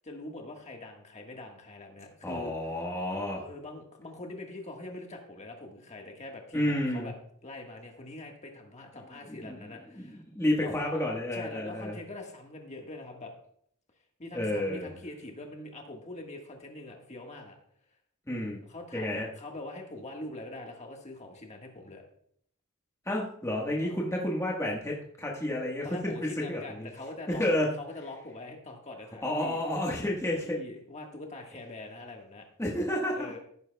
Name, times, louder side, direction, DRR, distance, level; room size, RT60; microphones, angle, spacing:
voice 1, 0.0-2.5 3.4-7.1 7.4-10.2 10.6-10.7 11.3-13.3 14.2-17.6 18.7-22.0 23.8-24.0 25.8-27.4 27.8-29.6 30.4-32.5 33.1-33.4, left 2 dB, 30° left, 2 dB, 1.5 m, -43 dB
voice 2, 2.2-3.4 6.5-7.1 9.3-9.7 10.0-12.0 14.3-14.9 18.3-18.6 18.9-19.3 23.1-26.9 27.3-27.7 29.2-30.6 32.6-33.3, left 1 dB, 15° left, -3 dB, 1.4 m, -30 dB
16.5 x 9.3 x 2.3 m, 0.64 s
head